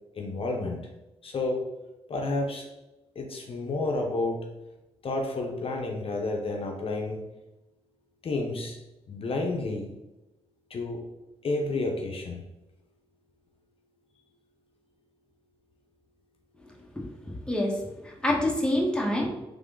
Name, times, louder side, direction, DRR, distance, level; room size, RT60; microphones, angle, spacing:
voice 1, 0.1-0.8 1.2-1.7 2.1-2.7 3.1-4.5 5.0-7.2 8.2-8.8 9.1-9.9 10.7-11.1 11.4-12.4, left 2 dB, 60° left, 2 dB, 0.7 m, -30 dB
voice 2, 17.0-19.3, left 1 dB, 10° left, -1 dB, 1.2 m, -27 dB
3.6 x 3.5 x 3.7 m, 0.98 s
cardioid pair, 65°, 11 cm